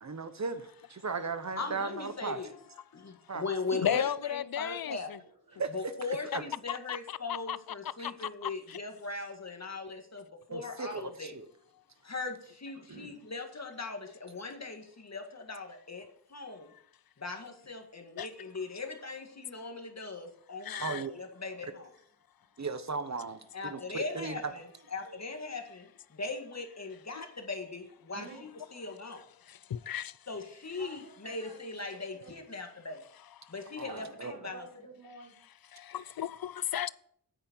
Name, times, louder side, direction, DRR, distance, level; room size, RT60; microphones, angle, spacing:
voice 1, 0.0-2.4 3.3-3.4 3.8-3.9 5.6-5.9 6.3-6.4 10.5-11.5 20.8-21.1 22.6-24.5 33.8-33.9 34.2-34.3, right 4 dB, 40° right, 1.1 m, -36 dB
voice 2, 1.6-2.6 2.9-5.1 5.7-11.4 12.0-16.7 17.2-21.9 23.5-28.3 28.7-29.3 30.3-33.0 33.5-34.0 34.4-34.7, left 3 dB, 40° left, 1.9 m, -39 dB
voice 3, 3.8-5.2 6.3-6.4 6.7-7.6 7.8-8.8 18.2-18.3 20.6-21.0 27.2-27.3 29.4-30.2 35.7-36.9, left 10 dB, 60° left, 0.5 m, -35 dB
voice 4, 5.2-5.6 12.7-13.2 20.7-21.9 22.4-22.7 23.5-24.0 25.0-25.2 28.1-28.8 30.8-31.6 32.1-32.3 33.9-35.3, right 3 dB, 65° right, 5.0 m, -51 dB
9.1 x 8.9 x 4.6 m
wide cardioid pair, 90°, 40 cm